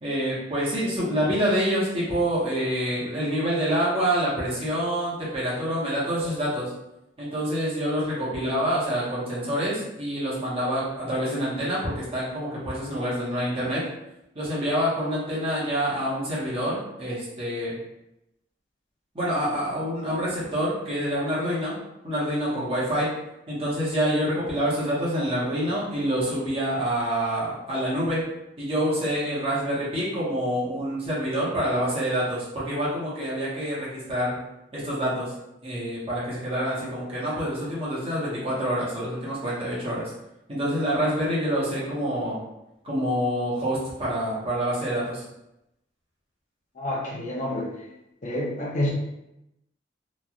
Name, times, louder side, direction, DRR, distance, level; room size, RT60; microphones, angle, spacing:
voice 1, 0.0-6.7 7.2-13.8 14.3-17.7 19.1-21.7 22.0-23.1 23.5-28.2 28.6-34.4 34.7-35.3 35.6-40.1 40.5-42.4 42.8-45.2, equal, 30° right, -8 dB, 1.0 m, -27 dB
voice 2, 46.8-47.7 48.2-48.9, left 1 dB, 40° left, -3 dB, 0.6 m, -28 dB
3.0 x 2.4 x 2.4 m, 0.88 s
head